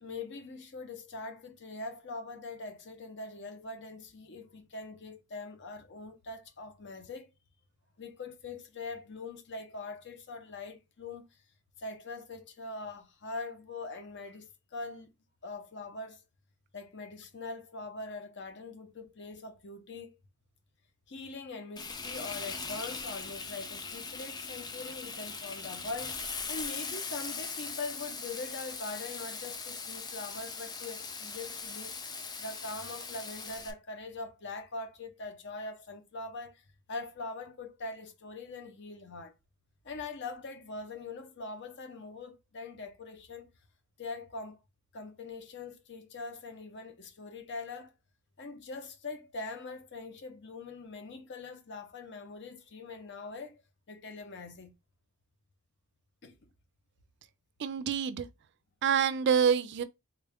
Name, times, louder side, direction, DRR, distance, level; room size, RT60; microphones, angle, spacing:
voice 1, 0.0-7.3 8.0-11.4 11.8-15.1 15.4-16.2 16.7-20.2 21.1-31.9 32.4-39.3 39.8-43.5 44.0-44.6 44.9-47.9 48.4-53.6 53.9-54.7 56.2-56.5, left 3 dB, 50° left, 0.7 m, -42 dB
Frying (food), 21.8-33.7, left 4 dB, 20° left, 0.4 m, -40 dB
voice 2, 57.6-58.3 58.8-59.8, right 7 dB, 50° right, 0.3 m, -26 dB
3.6 x 2.3 x 3.4 m
head